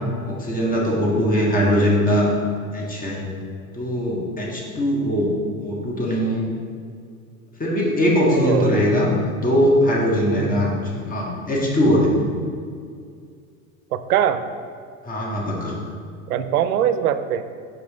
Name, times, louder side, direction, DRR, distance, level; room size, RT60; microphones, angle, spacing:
voice 1, 0.2-2.3 2.7-3.2 3.7-5.3 5.6-6.4 7.6-12.2 15.0-15.7, equal, 20° left, -3 dB, 1.6 m, -20 dB
voice 2, 8.3-8.8 10.3-10.8 13.9-14.4 16.3-17.5, right 9 dB, 75° right, 11 dB, 0.6 m, -22 dB
6.3 x 4.9 x 3.6 m, 2.2 s
hypercardioid pair, 85°, 45 cm